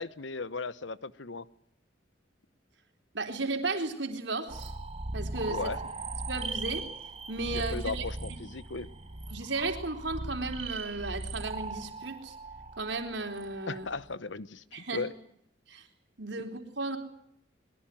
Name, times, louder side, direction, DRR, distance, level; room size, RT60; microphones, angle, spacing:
voice 1, 0.0-1.4 5.5-5.8 7.5-8.9 13.7-15.1, left 3 dB, 80° left, 15 dB, 1.1 m, -36 dB
voice 2, 3.1-4.7 5.1-5.7 6.3-6.9 7.3-8.1 8.4-8.5 8.7-8.9 9.3-12.3 12.8-13.9 14.7-15.0 15.7-15.9 16.2-17.0, right 3 dB, 70° right, 5 dB, 4.0 m, -34 dB
sound 1, 4.5-14.1, right 3 dB, 30° right, 1.3 m, -39 dB
22.0 x 22.0 x 9.1 m, 0.74 s
head